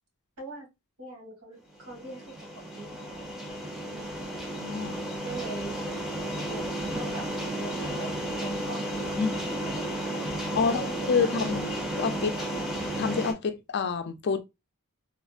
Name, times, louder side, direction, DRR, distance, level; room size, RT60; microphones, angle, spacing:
voice 1, 1.0-3.3 3.8-4.4 5.2-5.8 6.5-6.6 6.9-9.8 10.6-11.8 12.4-12.5, right 2 dB, 85° right, 1.7 m, -42 dB
sound 1, 1.8-13.3, right 1 dB, ahead, 0.5 m, -33 dB
voice 2, 4.6-5.0 9.2-9.4 10.5-12.3 13.0-14.4, left 5 dB, 50° left, 0.4 m, -28 dB
3.3 x 2.1 x 2.3 m
head